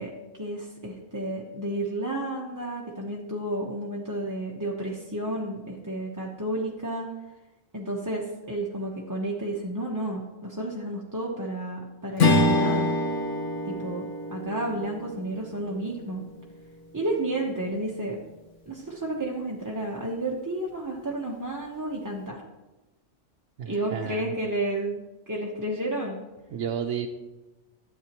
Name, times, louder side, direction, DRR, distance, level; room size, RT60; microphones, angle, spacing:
voice 1, 0.0-7.1 7.7-12.9 13.6-16.3 16.9-18.2 18.7-22.4 23.6-26.2, right 1 dB, 15° right, -3 dB, 0.9 m, -31 dB
Strum, 12.2-16.8, left 1 dB, 75° left, 1.5 m, -26 dB
voice 2, 23.6-24.3 26.5-27.1, right 8 dB, 75° right, 2 dB, 1.0 m, -31 dB
13.0 x 8.7 x 3.0 m, 1.1 s
omnidirectional pair, 1.3 m